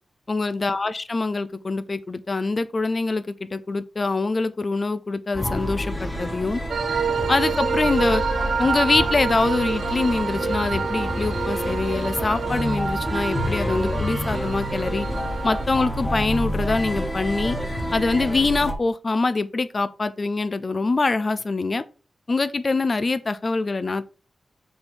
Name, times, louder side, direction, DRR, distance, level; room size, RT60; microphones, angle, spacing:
voice 1, 0.3-6.6 7.3-8.2 8.6-15.1 15.4-17.6 17.9-21.8 22.3-24.1, left 3 dB, 35° left, 0.5 m, -24 dB
sound 1, 5.3-18.7, equal, 15° left, 1.6 m, -28 dB
sound 2, 6.7-15.6, right 7 dB, 85° right, 0.4 m, -28 dB
5.5 x 4.4 x 5.6 m
wide cardioid pair, 110°, 0 cm